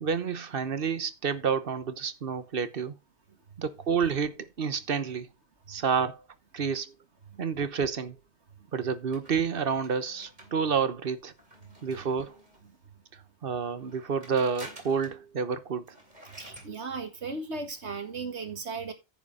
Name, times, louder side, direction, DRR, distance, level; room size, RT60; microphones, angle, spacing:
voice 1, 0.0-2.9 3.6-5.3 5.7-6.2 6.5-6.9 7.4-8.2 8.7-11.3 11.8-12.4 13.4-15.9, right 6 dB, 55° right, 1.1 m, -29 dB
sound 1, 9.1-12.8 13.7-15.3 15.6-15.7 15.9-16.7, right 1 dB, 40° right, 3.1 m, -50 dB
voice 2, 16.4-18.9, right 4 dB, 75° right, 2.1 m, -36 dB
10.0 x 7.6 x 4.1 m
omnidirectional pair, 1.2 m